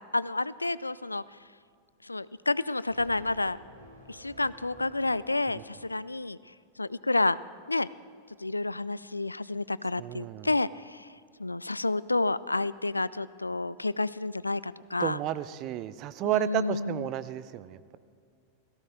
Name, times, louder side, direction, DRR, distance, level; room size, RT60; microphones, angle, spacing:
voice 1, 0.1-1.2 2.0-3.6 4.1-7.4 7.7-7.9 8.4-11.1 11.4-15.2 16.2-17.0, left 2 dB, 85° left, 19 dB, 0.3 m, -30 dB
sound 1, 2.8-6.3, equal, 85° right, 3.3 m, -53 dB
voice 2, 10.0-10.5 15.0-18.0, right 14 dB, 40° right, 14 dB, 0.6 m, -32 dB
17.0 x 15.0 x 4.7 m, 2.3 s
figure-of-eight pair, 90°, 0 cm